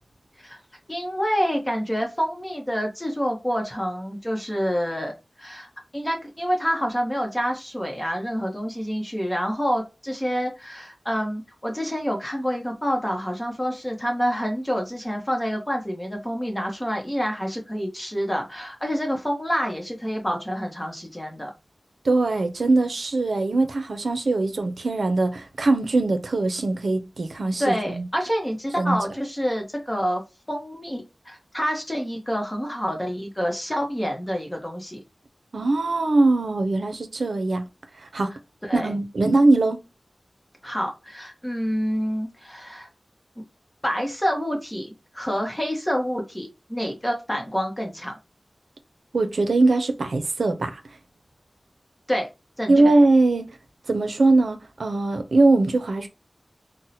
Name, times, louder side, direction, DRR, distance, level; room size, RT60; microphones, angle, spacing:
voice 1, 0.9-5.1 5.4-21.5 27.6-30.2 30.5-35.0 38.6-39.0 40.6-42.9 43.4-43.5 43.8-48.2 52.1-52.3 52.6-52.9, equal, 15° left, 0.8 m, -27 dB
voice 2, 22.0-28.0 28.8-29.0 35.5-37.6 38.0-38.3 38.7-39.8 49.1-50.8 52.7-53.5 53.9-56.1, right 2 dB, 85° right, 0.5 m, -21 dB
2.7 x 2.1 x 4.0 m
wide cardioid pair, 70°, 0 cm